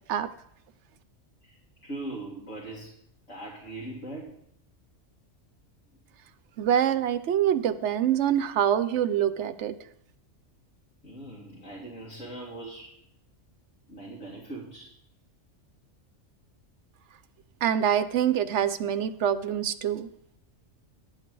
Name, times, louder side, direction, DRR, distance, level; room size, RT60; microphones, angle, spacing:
voice 1, 1.8-2.9 3.3-4.4 11.0-12.9 13.9-14.9, right 2 dB, 80° left, -4 dB, 2.3 m, -40 dB
voice 2, 6.6-9.8 17.6-20.1, right 9 dB, 70° right, 12 dB, 0.9 m, -25 dB
10.5 x 8.2 x 4.6 m, 0.72 s
omnidirectional pair, 1.3 m